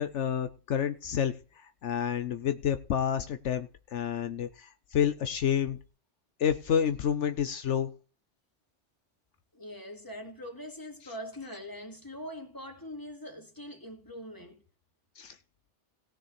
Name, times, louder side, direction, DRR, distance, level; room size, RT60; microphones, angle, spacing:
voice 1, 0.0-5.8 6.4-7.9 15.2-15.4, left 8 dB, 75° left, 1.1 m, -29 dB
voice 2, 9.5-14.6, equal, 15° left, 2.4 m, -42 dB
18.0 x 6.4 x 4.3 m
omnidirectional pair, 1.2 m